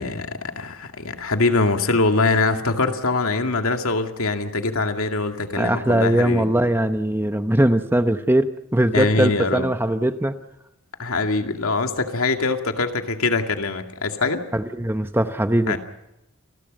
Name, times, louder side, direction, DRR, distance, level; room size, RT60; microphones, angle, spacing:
voice 1, 0.0-6.4 8.9-9.7 11.0-14.4 15.7-15.8, left 3 dB, 75° left, 5 dB, 2.3 m, -23 dB
voice 2, 5.6-10.4 14.5-15.8, right 1 dB, 10° right, 9 dB, 0.9 m, -20 dB
29.0 x 20.5 x 5.4 m, 0.88 s
head